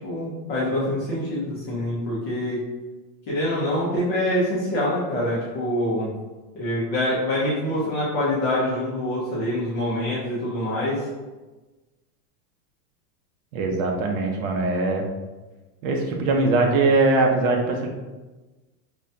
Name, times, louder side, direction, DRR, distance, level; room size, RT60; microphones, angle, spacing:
voice 1, 0.0-2.6 3.3-6.1 6.5-11.1, left 1 dB, 20° left, -9 dB, 0.3 m, -25 dB
voice 2, 13.5-15.0 15.8-17.9, right 3 dB, 60° right, 2 dB, 0.8 m, -21 dB
5.2 x 2.2 x 2.6 m, 1.2 s
supercardioid pair, 155°, 47 cm